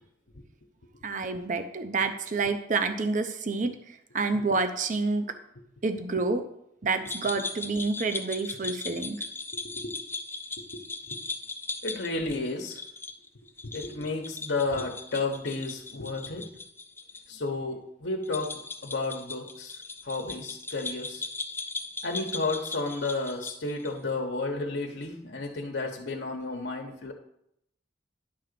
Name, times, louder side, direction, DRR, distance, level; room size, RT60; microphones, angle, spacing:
voice 1, 1.0-5.3 5.8-6.4 6.8-9.2, right 3 dB, 45° right, 7 dB, 0.7 m, -28 dB
sound 1, 7.0-17.2 17.5-17.6 18.2-24.0, left 3 dB, 10° left, 0.5 m, -38 dB
voice 2, 11.8-12.8 13.6-16.5 17.3-19.8 20.0-21.3 22.0-27.1, left 3 dB, 85° left, 1 dB, 1.0 m, -32 dB
10.5 x 3.9 x 6.7 m, 0.76 s
head